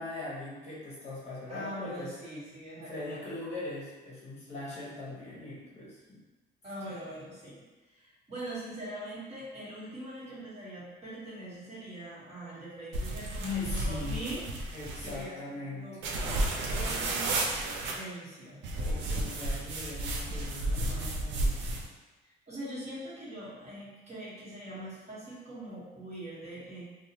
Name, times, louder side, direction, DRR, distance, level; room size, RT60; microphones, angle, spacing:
voice 1, 0.0-2.1 2.8-6.2 6.8-6.9 13.4-14.2 14.7-15.9 18.8-21.7, left 3 dB, 35° left, -7 dB, 0.8 m, -40 dB
voice 2, 1.5-3.3 6.6-7.6 7.9-16.4 16.7-18.6 22.5-26.8, right 1 dB, 35° right, -9 dB, 1.2 m, -42 dB
sound 1, 12.9-15.2 16.0-17.9 18.6-21.9, right 1 dB, 85° right, 0.5 m, -32 dB
2.7 x 2.1 x 2.8 m, 1.2 s
cardioid pair, 125°, 19 cm